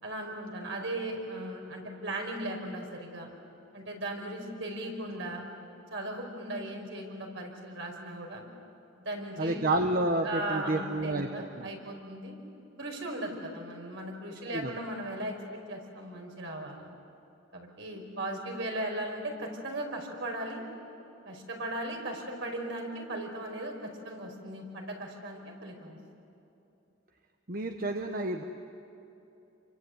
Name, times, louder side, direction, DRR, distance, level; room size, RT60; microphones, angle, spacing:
voice 1, 0.0-3.3 3.7-5.4 5.9-8.4 9.0-9.7 10.2-12.3 12.8-15.3 15.7-16.9 17.5-20.6 21.2-26.0, right 1 dB, 65° right, 2 dB, 5.1 m, -37 dB
voice 2, 9.4-11.3 11.5-11.7 14.4-14.8 27.5-28.4, right 2 dB, 45° right, 5 dB, 1.1 m, -30 dB
29.0 x 24.5 x 8.1 m, 2.9 s
head